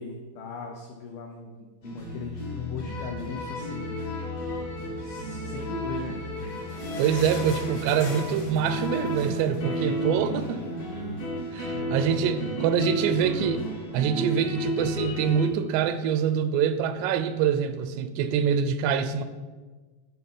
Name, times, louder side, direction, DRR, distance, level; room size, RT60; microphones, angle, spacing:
voice 1, 0.0-4.0 5.0-6.2 11.7-13.5, left 4 dB, 80° left, 2 dB, 2.0 m, -39 dB
sound 1, 1.8-15.5, equal, 40° left, 1.4 m, -32 dB
sound 2, 6.0-10.7 11.1-11.2 11.4-11.6 12.3-12.4, left 2 dB, 65° left, 1.6 m, -42 dB
voice 2, 7.0-10.6 11.5-13.6 13.9-19.2, right 8 dB, 85° right, 11 dB, 2.7 m, -25 dB
11.5 x 4.2 x 5.3 m, 1.3 s
omnidirectional pair, 4.8 m